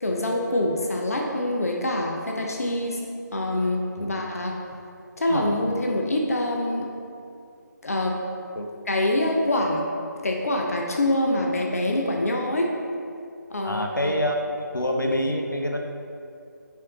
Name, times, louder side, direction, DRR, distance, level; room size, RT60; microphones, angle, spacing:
voice 1, 0.0-3.0 3.3-4.6 5.2-6.9 7.8-8.2 8.9-9.8 10.2-12.7 13.5-14.2, left 1 dB, 50° left, 0 dB, 0.8 m, -25 dB
voice 2, 13.6-14.4 14.7-15.8, left 1 dB, 80° left, 2 dB, 1.0 m, -26 dB
7.0 x 4.5 x 4.0 m, 2.5 s
figure-of-eight pair, 160°, 10 cm